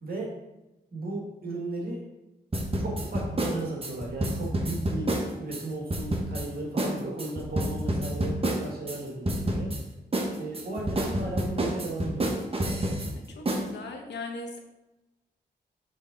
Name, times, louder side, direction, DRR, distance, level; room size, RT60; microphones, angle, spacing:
voice 1, 0.9-2.0 2.8-5.1 5.4-9.7 10.4-12.3, right 2 dB, 60° right, -2 dB, 1.7 m, -35 dB
sound 1, 2.5-5.6 5.9-6.5 6.8-6.9 7.2-9.0 9.3-9.8 10.1-13.1 13.5-13.6, right 1 dB, 35° right, 1.2 m, -28 dB
voice 2, 13.3-14.6, left 3 dB, 85° left, 3 dB, 0.9 m, -38 dB
6.4 x 3.5 x 4.9 m, 1.0 s
cardioid pair, 60°, 18 cm